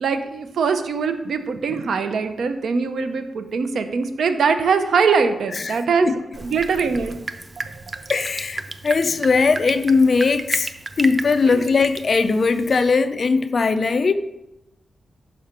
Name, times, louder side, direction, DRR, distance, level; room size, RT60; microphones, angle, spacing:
voice 1, 0.0-6.1 6.4-7.2 11.5-11.7, right 5 dB, 80° right, 8 dB, 0.6 m, -22 dB
voice 2, 5.6-6.1 8.1-10.7 11.0-14.1, left 4 dB, 45° left, 10 dB, 0.4 m, -19 dB
Drip, 6.3-12.9, right 3 dB, 30° right, 0.4 m, -33 dB
5.6 x 5.0 x 5.8 m, 0.92 s
wide cardioid pair, 145°, 0 cm